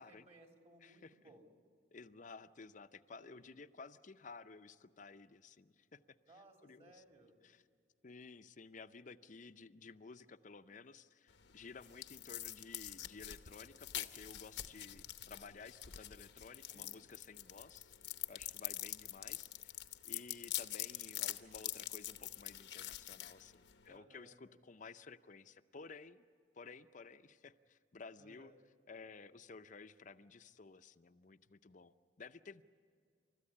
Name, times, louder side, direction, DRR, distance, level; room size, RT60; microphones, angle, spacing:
voice 1, 0.0-1.5 3.2-3.5 6.3-7.3 16.7-17.0 23.9-24.4 28.2-28.6, right 2 dB, 35° right, 2 dB, 2.9 m, -62 dB
voice 2, 0.8-1.1 1.9-6.0 6.6-7.0 7.4-7.6 8.0-18.0 18.3-19.7 20.0-26.3 26.5-28.5 28.9-32.6, left 4 dB, 45° left, 11 dB, 0.6 m, -54 dB
sound 1, 11.3-24.0, left 13 dB, 80° left, 0.9 m, -45 dB
29.5 x 14.0 x 9.8 m, 2.1 s
head